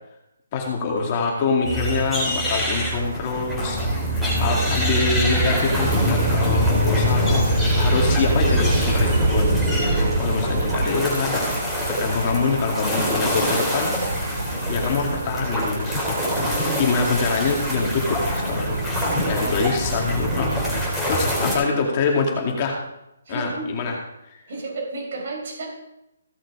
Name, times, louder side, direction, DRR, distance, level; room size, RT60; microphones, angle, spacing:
voice 1, 0.5-3.8 4.4-14.0 14.7-16.5 16.8-18.9 19.2-22.8 23.3-24.0, left 4 dB, 25° left, 0 dB, 2.2 m, -25 dB
sound 1, 1.6-21.6, equal, ahead, 3.2 m, -23 dB
sound 2, 5.3-20.8, right 3 dB, 75° right, 2.7 m, -32 dB
voice 2, 23.3-23.7 24.5-25.7, right 2 dB, 50° right, -2 dB, 5.4 m, -32 dB
16.0 x 6.4 x 4.9 m, 0.86 s
hypercardioid pair, 170°, 0 cm